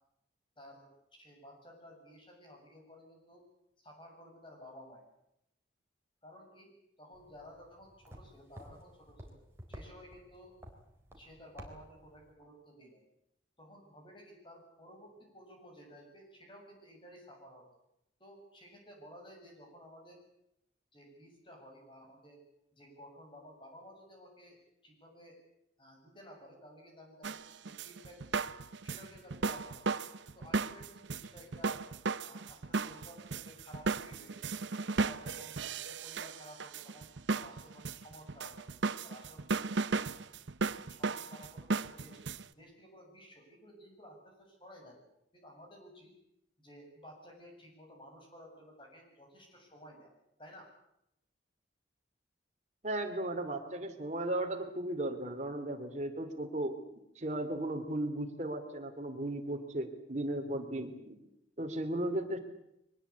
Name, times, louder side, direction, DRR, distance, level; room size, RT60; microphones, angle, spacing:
voice 1, 0.6-0.9 1.2-3.4 3.8-5.1 6.2-6.7 7.0-9.4 9.7-10.5 11.2-13.0 13.6-17.7 18.2-20.2 20.9-22.4 22.7-24.6 24.8-25.4 25.8-27.4 27.6-28.5 28.8-29.9 30.3-31.8 32.2-34.4 34.8-35.6 35.9-38.7 39.0-39.5 40.3-40.4 40.9-42.2 42.6-45.0 45.3-46.1 46.6-50.1 50.4-50.7, equal, 25° left, 1 dB, 7.5 m, -54 dB
sound 1, 7.1-12.3, equal, 15° right, 3.9 m, -53 dB
sound 2, 27.2-42.4, right 4 dB, 75° right, 0.8 m, -36 dB
voice 2, 52.8-56.8 57.1-61.1 61.6-62.4, right 1 dB, 40° right, 5 dB, 3.1 m, -36 dB
23.5 x 20.0 x 8.4 m, 0.82 s
head